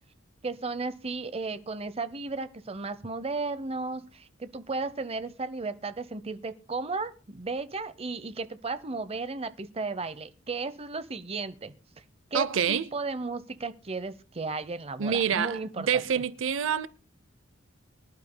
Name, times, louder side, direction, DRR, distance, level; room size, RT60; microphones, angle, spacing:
voice 1, 0.4-11.7 12.3-16.0, right 3 dB, 30° right, 0.8 m, -34 dB
voice 2, 12.3-12.9 15.0-16.9, right 7 dB, 70° right, 0.6 m, -27 dB
24.0 x 11.5 x 2.2 m
head